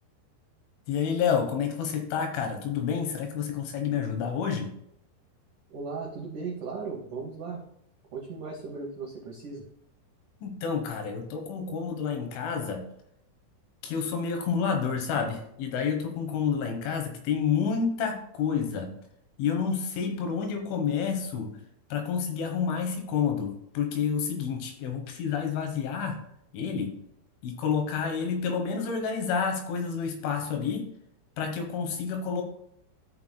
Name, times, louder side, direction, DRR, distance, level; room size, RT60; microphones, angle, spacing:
voice 1, 0.9-4.7 10.4-12.8 13.8-18.9 19.4-21.5 21.9-26.2 26.5-26.9 27.4-30.9 31.4-32.4, left 6 dB, 80° left, 4 dB, 3.7 m, -29 dB
voice 2, 5.7-7.6 8.1-9.6, right 4 dB, 85° right, -1 dB, 1.7 m, -37 dB
14.5 x 5.8 x 2.3 m, 0.73 s
omnidirectional pair, 5.4 m